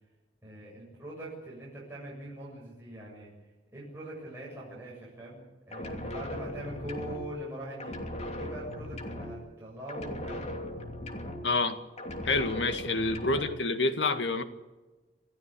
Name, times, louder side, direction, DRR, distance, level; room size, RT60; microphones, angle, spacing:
voice 1, 0.4-3.3 3.7-7.9 8.3-10.5 13.0-13.1, right 1 dB, 15° right, -6 dB, 7.6 m, -42 dB
sound 1, 5.7-7.5 7.8-9.6 9.9-11.7 12.0-13.7, left 1 dB, 40° left, 2.9 m, -39 dB
voice 2, 11.4-11.8 12.2-14.4, left 3 dB, 85° left, 8 dB, 1.9 m, -28 dB
27.5 x 15.0 x 8.5 m, 1.2 s
head